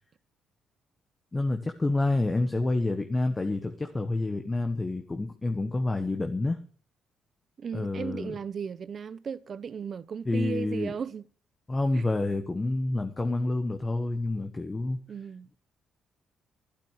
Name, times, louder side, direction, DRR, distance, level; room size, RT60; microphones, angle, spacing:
voice 1, 1.3-6.6 7.7-8.3 10.2-10.9 11.7-15.0, left 2 dB, 20° left, 1.4 m, -28 dB
voice 2, 7.6-11.3 11.9-12.1 15.1-15.5, right 6 dB, 50° right, 0.7 m, -36 dB
12.0 x 12.0 x 6.5 m
cardioid pair, 90°, 0 cm